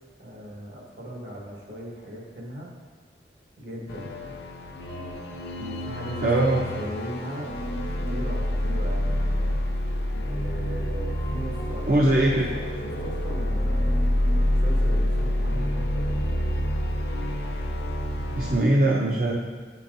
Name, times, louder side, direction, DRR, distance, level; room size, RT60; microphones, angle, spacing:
voice 1, 0.2-2.7 3.6-4.2 5.6-7.5 7.9-9.2 10.3-14.0 14.4-16.1, equal, 70° right, -2 dB, 1.3 m, -38 dB
sound 1, 3.9-18.6, left 1 dB, 70° left, 0.6 m, -27 dB
voice 2, 6.2-6.7 11.9-12.5 18.4-19.4, right 1 dB, 50° right, -1 dB, 0.4 m, -21 dB
8.1 x 5.6 x 2.6 m, 1.5 s
head